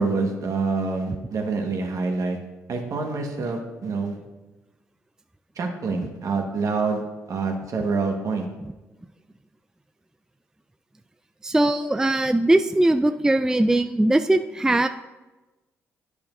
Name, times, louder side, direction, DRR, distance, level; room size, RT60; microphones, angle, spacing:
voice 1, 0.0-2.4 2.7-4.2 5.6-7.0 7.3-8.5, right 4 dB, 55° right, 2 dB, 1.5 m, -26 dB
voice 2, 11.4-14.9, right 1 dB, 10° right, 9 dB, 0.3 m, -20 dB
10.5 x 6.8 x 2.6 m, 1.1 s
hypercardioid pair, 50°, 7 cm